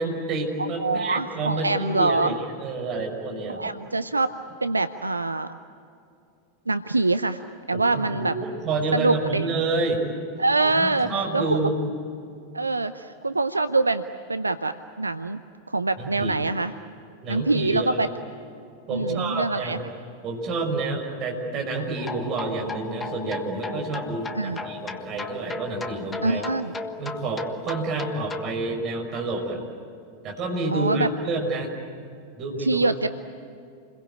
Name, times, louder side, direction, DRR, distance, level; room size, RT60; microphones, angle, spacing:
voice 1, 0.0-3.7 7.7-10.0 10.7-11.8 16.0-16.3 17.2-18.0 18.9-19.8 20.2-26.4 27.0-29.6 30.2-31.7 32.4-33.1, right 2 dB, 35° right, 1 dB, 6.1 m, -29 dB
voice 2, 0.6-2.3 3.5-4.3 4.6-5.5 6.7-7.4 7.7-8.4 8.9-9.5 10.4-11.7 12.5-14.0 14.3-15.4 15.7-16.7 17.3-18.1 18.9-19.8 24.3-24.6 26.2-26.7 30.7-31.1 32.6-33.1, right 3 dB, 80° right, 11 dB, 0.6 m, -24 dB
sound 1, 22.0-28.5, left 4 dB, 15° left, 1.5 m, -36 dB
29.5 x 22.5 x 8.6 m, 2.5 s
figure-of-eight pair, 90°, 0 cm